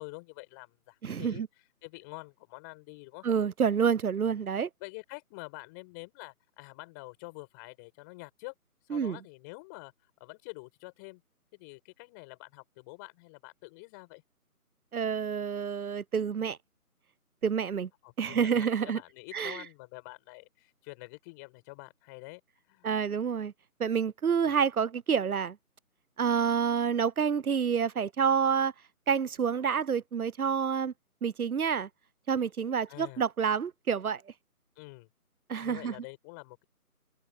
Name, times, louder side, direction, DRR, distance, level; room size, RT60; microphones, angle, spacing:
voice 1, 0.0-1.4 1.8-3.3 4.2-4.3 4.8-8.5 8.8-11.2 11.5-14.2 18.0-22.4 22.7-22.9 24.5-24.6 32.9-33.2 34.8-35.1 35.6-36.6, left 28 dB, 10° left, 5.3 m, -47 dB
voice 2, 1.0-1.5 3.2-4.7 8.9-9.2 14.9-16.6 17.4-17.9 18.2-19.0 19.3-19.6 22.8-23.5 23.8-25.6 26.2-28.7 29.1-30.9 31.2-31.9 32.3-34.2 35.5-35.9, right 7 dB, 70° right, 0.7 m, -28 dB
figure-of-eight pair, 155°, 45 cm